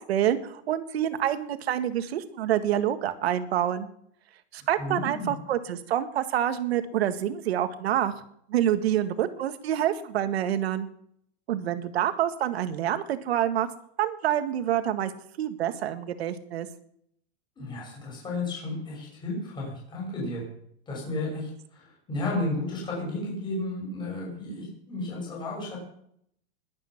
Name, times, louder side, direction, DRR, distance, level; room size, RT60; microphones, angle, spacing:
voice 1, 0.0-3.9 4.5-8.2 8.5-10.9 11.5-13.7 14.0-15.1 15.4-16.7, right 11 dB, 70° right, 10 dB, 1.8 m, -27 dB
voice 2, 4.6-5.3 17.6-20.4 20.9-25.8, left 2 dB, 15° left, -3 dB, 6.0 m, -33 dB
21.0 x 9.0 x 6.0 m, 0.70 s
supercardioid pair, 165°, 32 cm